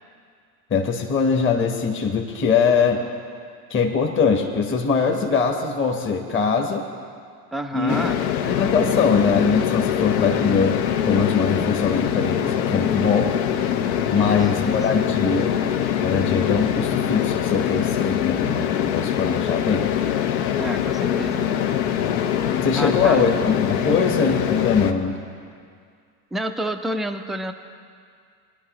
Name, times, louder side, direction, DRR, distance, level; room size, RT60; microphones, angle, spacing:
voice 1, 0.7-3.0 3.7-6.8 7.7-8.0 8.5-10.8 11.0-13.3 14.1-15.6 16.0-19.9 22.6-25.2, left 5 dB, 25° left, 2 dB, 1.2 m, -22 dB
voice 2, 7.5-8.2 14.1-15.0 20.6-21.5 22.8-23.3 26.3-27.5, right 1 dB, ahead, 5 dB, 0.4 m, -29 dB
sound 1, 7.9-24.9, left 9 dB, 65° left, 0.9 m, -23 dB
19.5 x 11.0 x 3.1 m, 2.2 s
hypercardioid pair, 85°, 46 cm